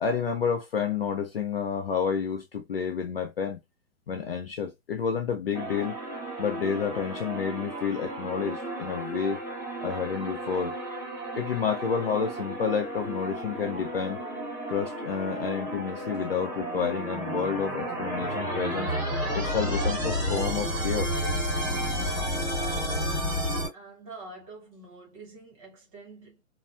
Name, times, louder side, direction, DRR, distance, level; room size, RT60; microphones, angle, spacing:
voice 1, 0.0-3.6 4.1-6.0 6.4-9.4 9.8-10.8 11.4-14.2 14.7-18.9 19.3-21.1, left 6 dB, 45° left, 0.4 m, -30 dB
sound 1, 5.5-23.7, equal, 5° right, 1.2 m, -32 dB
voice 2, 23.7-26.4, right 3 dB, 25° right, 0.9 m, -46 dB
2.9 x 2.1 x 2.4 m
hypercardioid pair, 160°, 42 cm